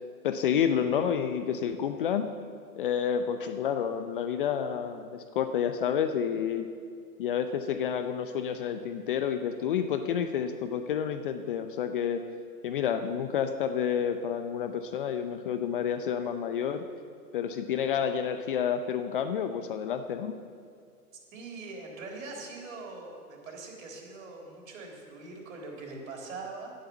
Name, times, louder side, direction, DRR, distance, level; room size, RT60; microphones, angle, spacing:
voice 1, 0.2-2.3 2.8-6.7 7.2-12.2 12.6-16.8 17.3-20.3, left 8 dB, 35° left, 8 dB, 0.6 m, -29 dB
voice 2, 21.3-26.7, right 3 dB, 55° right, 1 dB, 3.9 m, -42 dB
11.5 x 10.5 x 7.0 m, 2.3 s
hypercardioid pair, 130°, 47 cm